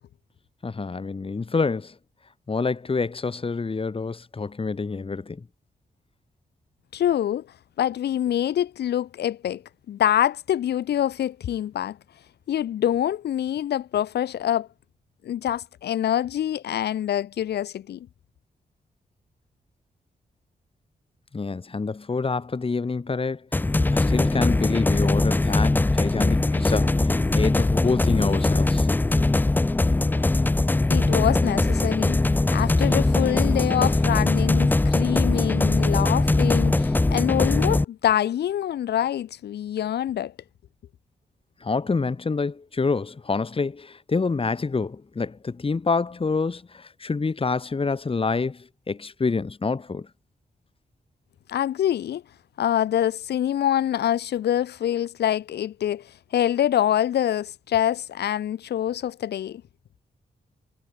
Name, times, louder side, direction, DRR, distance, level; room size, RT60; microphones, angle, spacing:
voice 1, 0.6-1.9 2.5-5.4 21.3-23.5 23.9-28.9 41.6-50.1, left 4 dB, 35° left, 1.3 m, -27 dB
voice 2, 6.9-7.5 7.8-9.6 9.9-12.0 12.5-14.7 15.2-18.1 30.9-32.2 32.5-40.3 51.5-52.2 52.6-59.6, left 11 dB, 85° left, 1.2 m, -25 dB
sound 1, 23.5-37.8, left 2 dB, 10° left, 0.3 m, -21 dB
cardioid pair, 55°, 17 cm